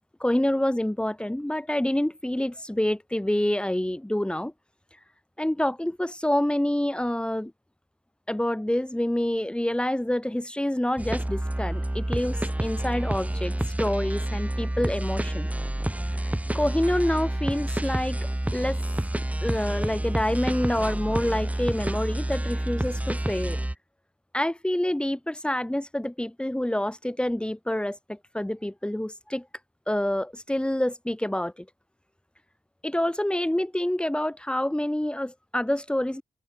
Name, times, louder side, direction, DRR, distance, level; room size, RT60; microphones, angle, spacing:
voice 1, 0.2-4.5 5.4-7.5 8.3-15.5 16.1-18.2 18.5-18.8 19.4-23.6 24.3-29.5 29.9-31.7 32.8-36.2, left 1 dB, 10° left, 2.9 m, -27 dB
sound 1, 11.0-23.7, right 1 dB, 10° right, 6.2 m, -29 dB
cardioid pair, 75°, 12 cm